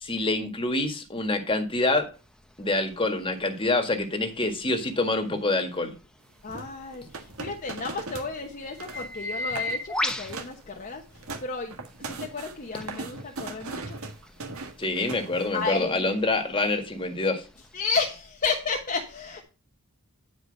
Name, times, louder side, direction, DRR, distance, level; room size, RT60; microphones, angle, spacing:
voice 1, 0.0-2.1 2.6-5.9 14.8-17.4, left 2 dB, 25° left, 5 dB, 1.8 m, -26 dB
sound 1, 2.1-11.4 11.9-17.7, left 1 dB, 5° left, 0.9 m, -39 dB
voice 2, 6.4-11.0 11.4-11.8 12.0-14.0 15.5-16.1 17.7-19.4, left 4 dB, 40° left, 1 dB, 1.1 m, -32 dB
sound 2, 6.5-8.3 8.6-9.1 9.4-9.8 10.1-10.6 11.0-15.7, right 3 dB, 75° right, 1.6 m, -39 dB
9.8 x 4.9 x 5.3 m, 0.32 s
head